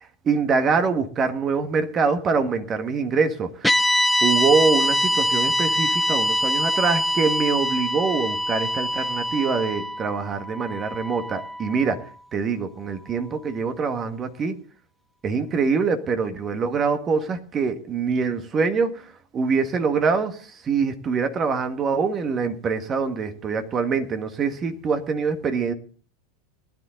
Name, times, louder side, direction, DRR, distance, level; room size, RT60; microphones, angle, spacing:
voice 1, 0.3-3.7 4.2-12.0 12.3-14.6 15.2-25.7, right 5 dB, 35° right, 8 dB, 1.7 m, -24 dB
sound 1, 3.6-11.9, equal, 5° left, 0.7 m, -24 dB
19.5 x 10.5 x 3.9 m, 0.41 s
hypercardioid pair, 95°, 0 cm